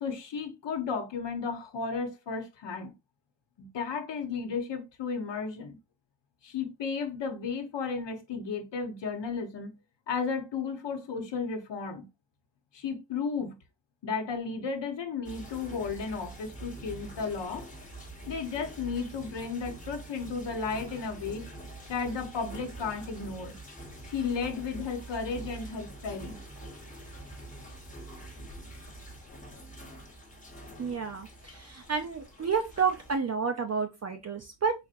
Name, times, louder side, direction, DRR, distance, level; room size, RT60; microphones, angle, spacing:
voice 1, 0.0-2.9 3.6-5.8 6.4-9.8 10.1-12.1 12.7-13.6 14.0-17.7 18.3-21.4 21.9-23.5 24.0-26.4, left 5 dB, 65° left, 1.0 m, -34 dB
sound 1, 15.2-33.2, right 2 dB, 15° left, 1.0 m, -45 dB
voice 2, 30.8-34.7, right 5 dB, 35° right, 0.5 m, -30 dB
4.0 x 2.8 x 2.5 m
cardioid pair, 90°, 47 cm